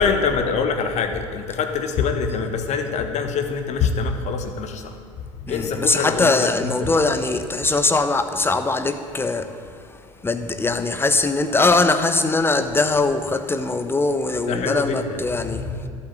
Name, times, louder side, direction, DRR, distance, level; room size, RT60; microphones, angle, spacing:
voice 1, 0.0-6.9 14.5-15.9, left 5 dB, 45° left, 1.6 m, -25 dB
voice 2, 5.5-15.9, left 3 dB, 15° left, 1.1 m, -21 dB
11.5 x 8.6 x 9.0 m
figure-of-eight pair, 70°, 17 cm